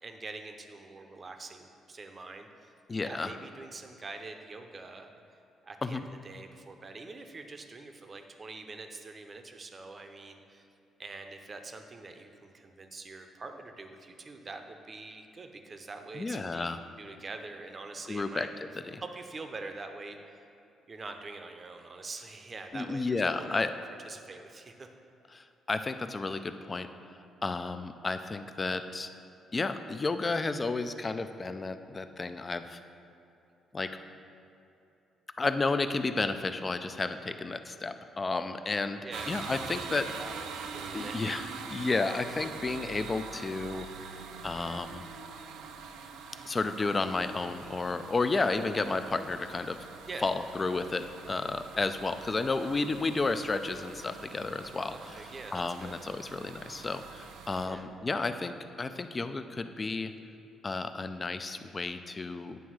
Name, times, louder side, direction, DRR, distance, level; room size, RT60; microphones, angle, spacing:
voice 1, 0.0-5.1 5.6-10.7 11.0-18.5 19.0-20.4 20.9-23.6 24.0-24.9 39.0-39.3 40.0-41.3 50.1-50.2 54.9-55.9 57.6-57.8, right 3 dB, 35° right, 5 dB, 0.7 m, -45 dB
voice 2, 2.9-3.4 5.8-6.0 16.1-16.8 18.1-18.5 18.9-19.0 22.7-23.7 25.3-26.9 27.4-29.1 29.5-32.8 33.7-33.9 35.4-39.0 39.3-40.1 40.9-41.4 41.7-43.9 44.4-45.0 46.5-49.8 50.2-54.9 55.5-60.1 60.6-62.6, left 3 dB, 30° left, 9 dB, 0.4 m, -32 dB
sound 1, 39.1-57.7, right 6 dB, 90° right, 0.5 m, -44 dB
9.2 x 3.5 x 6.2 m, 2.8 s
cardioid pair, 90°, 0 cm